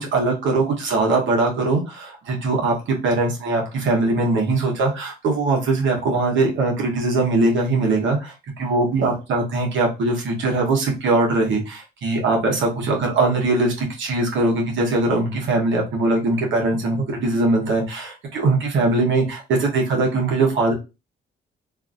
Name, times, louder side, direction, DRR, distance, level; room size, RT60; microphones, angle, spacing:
voice 1, 0.0-20.7, right 2 dB, 70° right, 0 dB, 1.0 m, -21 dB
2.7 x 2.5 x 2.4 m, 0.27 s
cardioid pair, 90°, 20 cm